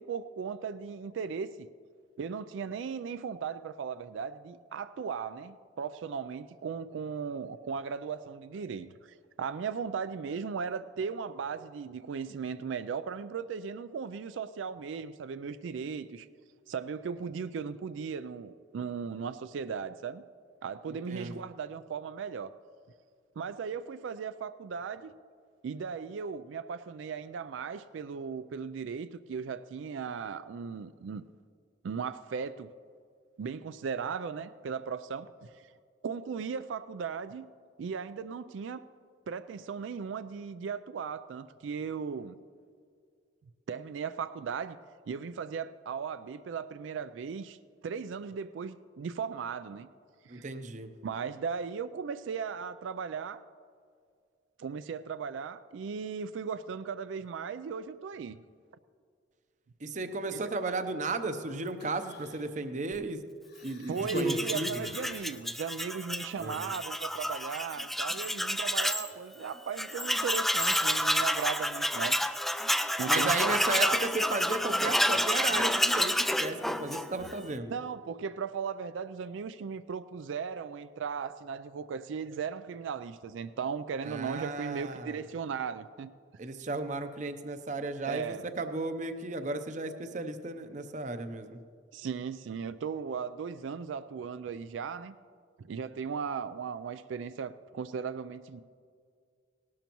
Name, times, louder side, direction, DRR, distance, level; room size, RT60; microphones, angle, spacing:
voice 1, 0.0-1.7 2.2-16.3 16.7-20.2 20.6-22.5 23.4-25.1 25.6-31.2 31.8-32.7 33.4-35.7 36.0-37.4 37.8-38.8 39.3-42.4 43.7-44.8 45.1-47.6 47.8-49.9 50.2-50.5 51.0-53.4 54.6-58.4 60.3-60.4 63.9-72.2 73.0-74.0 77.7-86.1 88.1-88.5 91.9-95.2 95.6-98.6, right 6 dB, 90° right, 13 dB, 0.4 m, -37 dB
voice 2, 21.1-21.4 50.3-50.9 59.8-63.2 63.6-64.7 66.4-66.7 73.1-77.8 84.0-85.2 86.4-91.6, right 3 dB, 40° right, 9 dB, 0.6 m, -34 dB
Human voice, 61.7-62.6 63.5-65.4 66.3-66.5, right 1 dB, 60° left, 1.4 m, -38 dB
Tools, 64.0-69.1 69.4-69.5 69.8-77.4, equal, ahead, 0.3 m, -29 dB
18.5 x 12.0 x 3.0 m, 2.2 s
head